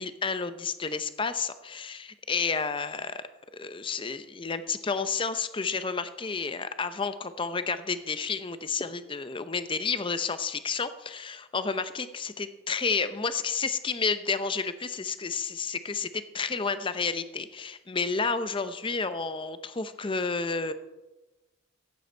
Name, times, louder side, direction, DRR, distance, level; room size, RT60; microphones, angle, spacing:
voice 1, 0.0-3.2 3.5-20.7, left 5 dB, 25° left, 12 dB, 0.6 m, -31 dB
14.5 x 9.2 x 4.5 m, 1.1 s
head